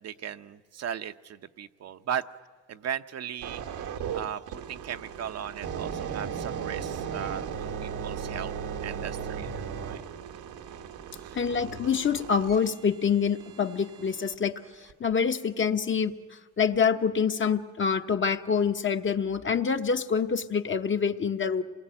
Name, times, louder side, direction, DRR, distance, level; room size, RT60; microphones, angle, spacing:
voice 1, 0.0-2.2 2.7-3.6 4.1-8.5 8.8-10.0 11.2-11.4, right 9 dB, 55° right, 9 dB, 0.8 m, -37 dB
sound 1, 3.4-14.3 14.9-15.1, right 7 dB, 80° right, 1.4 m, -37 dB
voice 2, 11.3-14.5 15.0-16.1 16.6-21.6, left 6 dB, 40° left, 7 dB, 1.1 m, -26 dB
27.0 x 20.0 x 9.0 m, 1.5 s
cardioid pair, 90°, 30 cm